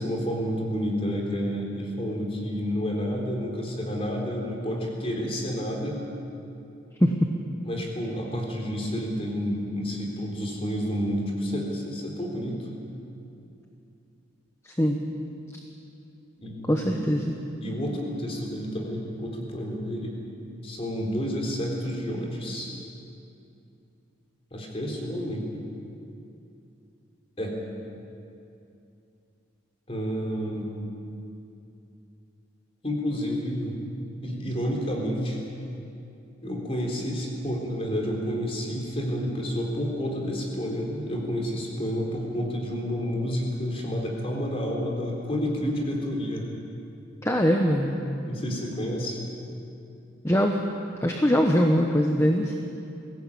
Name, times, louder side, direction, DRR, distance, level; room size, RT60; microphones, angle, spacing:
voice 1, 0.0-6.0 7.6-12.7 16.4-17.2 17.6-20.1 20.6-22.7 24.5-25.4 27.4-27.6 29.9-30.7 32.8-33.8 34.2-35.4 36.4-46.5 48.2-49.2, equal, 30° left, 0 dB, 3.9 m, -30 dB
voice 2, 16.7-17.3 47.2-48.0 50.2-50.6 51.0-52.5, equal, 15° left, 2 dB, 1.1 m, -22 dB
21.5 x 16.5 x 8.7 m, 2.6 s
head